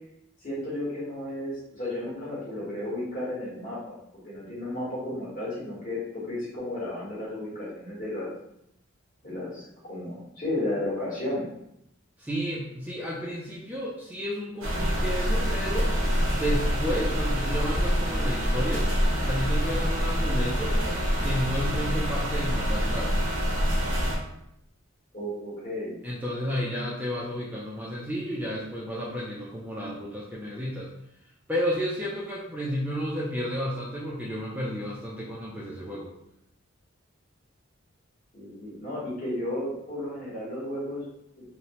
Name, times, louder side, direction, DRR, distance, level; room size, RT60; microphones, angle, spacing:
voice 1, 0.4-8.3 9.2-11.4 25.1-26.0 38.3-41.0, left 1 dB, 40° left, -8 dB, 1.3 m, -33 dB
voice 2, 12.2-15.9 16.3-18.9 19.2-20.8 21.2-23.2 26.0-30.9 31.5-36.1, equal, 10° right, -5 dB, 0.4 m, -32 dB
sound 1, 14.6-24.2, equal, 75° right, 0.7 m, -26 dB
2.8 x 2.1 x 2.9 m, 0.79 s
head